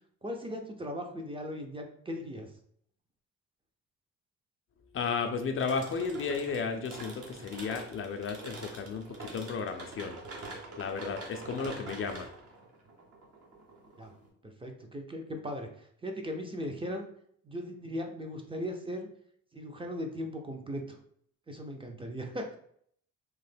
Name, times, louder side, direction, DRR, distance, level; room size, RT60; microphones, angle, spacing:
voice 1, 0.2-2.5 14.0-14.1 14.4-17.1 17.4-19.1 19.5-21.0 21.5-22.6, equal, 20° right, 3 dB, 0.5 m, -38 dB
voice 2, 4.9-10.2 10.8-12.3, left 5 dB, 45° left, 6 dB, 0.4 m, -34 dB
sound 1, 5.6-14.3, right 2 dB, 55° right, 0.9 m, -45 dB
3.0 x 2.1 x 3.3 m, 0.65 s
cardioid pair, 90°, 30 cm